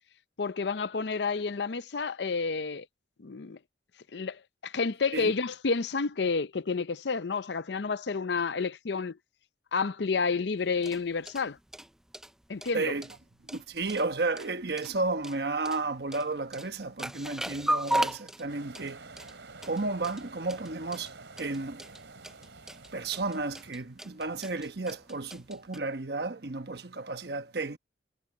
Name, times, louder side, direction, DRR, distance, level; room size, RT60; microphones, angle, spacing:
voice 1, 0.4-2.9 3.2-3.6 4.1-9.2 9.7-11.6 12.5-12.9, left 4 dB, 70° left, 0.6 m, -30 dB
sound 1, 10.6-25.8, right 1 dB, 5° right, 0.3 m, -37 dB
voice 2, 12.7-13.1 13.5-19.1 19.6-21.8 22.9-27.8, right 3 dB, 60° right, 1.1 m, -33 dB
sound 2, 18.5-23.7, right 3 dB, 90° right, 3.5 m, -49 dB
head